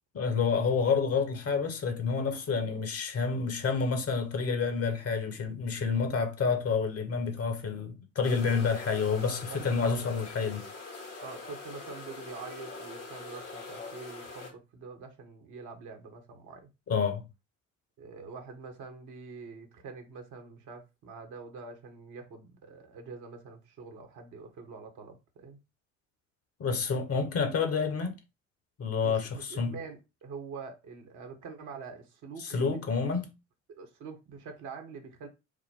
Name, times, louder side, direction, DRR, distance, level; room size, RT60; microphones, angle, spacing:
voice 1, 0.1-10.7 16.9-17.3 26.6-28.2 28.8-29.8 32.4-33.3, left 5 dB, 40° left, 1.3 m, -29 dB
sound 1, 8.2-14.5, left 3 dB, 70° left, 2.1 m, -43 dB
voice 2, 11.2-16.7 18.0-25.6 29.0-32.8 33.7-35.3, right 5 dB, 55° right, 1.4 m, -45 dB
5.0 x 2.1 x 3.7 m
figure-of-eight pair, 55°, 37 cm